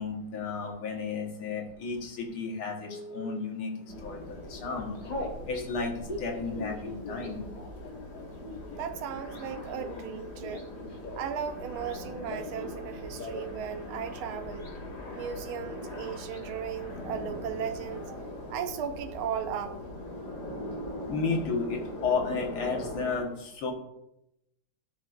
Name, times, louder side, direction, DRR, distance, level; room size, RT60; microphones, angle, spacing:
voice 1, 0.0-4.9 5.4-7.4 21.1-23.7, left 4 dB, 85° left, 1 dB, 2.3 m, -33 dB
Telephone, 2.9-3.4 4.0-4.2 4.5-5.4 5.9-11.4 11.7-12.8 13.1-13.6 13.9-14.0 14.2-14.8, left 2 dB, 30° left, 1.0 m, -41 dB
sound 1, 3.9-23.2, left 1 dB, 50° left, 2.3 m, -41 dB
voice 2, 8.8-10.7 11.1-14.7 15.1-18.2 18.5-19.8, right 8 dB, 80° right, 8 dB, 1.6 m, -36 dB
13.5 x 6.1 x 2.5 m, 0.82 s
omnidirectional pair, 2.3 m